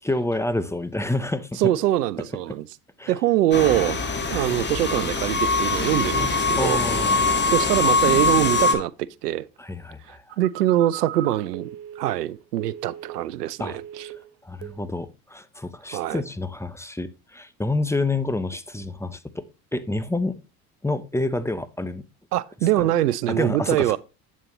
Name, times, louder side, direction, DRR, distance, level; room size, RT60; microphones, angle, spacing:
voice 1, 0.0-1.6 3.0-3.1 6.6-7.2 9.6-10.2 13.6-13.8 14.4-19.4 19.7-20.4 20.8-22.0 23.3-24.0, left 2 dB, 5° left, 0.7 m, -28 dB
voice 2, 1.6-2.6 3.1-4.0 4.3-6.8 7.5-9.5 10.1-11.7 12.0-14.1 15.9-16.2 22.3-24.0, right 13 dB, 85° right, 0.6 m, -23 dB
sound 1, 3.5-8.7, left 3 dB, 25° left, 1.7 m, -22 dB
Telephone, 10.3-13.3 13.6-14.3 14.6-14.9, right 12 dB, 60° right, 1.3 m, -39 dB
8.3 x 7.4 x 3.0 m
hypercardioid pair, 70°, 46 cm